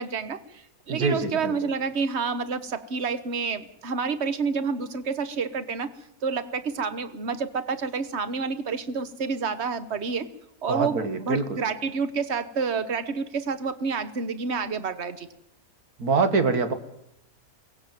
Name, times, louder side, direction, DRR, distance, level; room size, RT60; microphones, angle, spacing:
voice 1, 0.0-5.9 6.2-10.3 10.6-15.3, right 5 dB, 50° right, 12 dB, 1.5 m, -29 dB
voice 2, 0.9-1.5 10.7-11.6 16.0-16.7, right 4 dB, 90° right, 9 dB, 2.2 m, -24 dB
22.5 x 18.0 x 9.1 m, 0.79 s
omnidirectional pair, 1.5 m